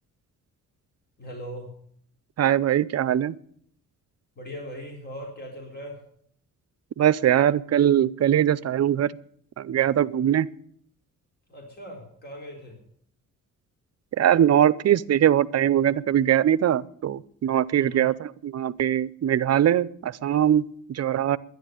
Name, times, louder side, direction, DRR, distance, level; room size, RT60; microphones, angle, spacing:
voice 1, 1.2-1.8 4.4-6.0 11.5-12.8 17.8-18.1, equal, 30° left, 0 dB, 4.2 m, -39 dB
voice 2, 2.4-3.4 7.0-9.1 9.6-10.5 14.2-21.4, right 10 dB, 50° right, 19 dB, 0.6 m, -21 dB
11.5 x 10.5 x 9.1 m, 0.64 s
cardioid pair, 125°, 32 cm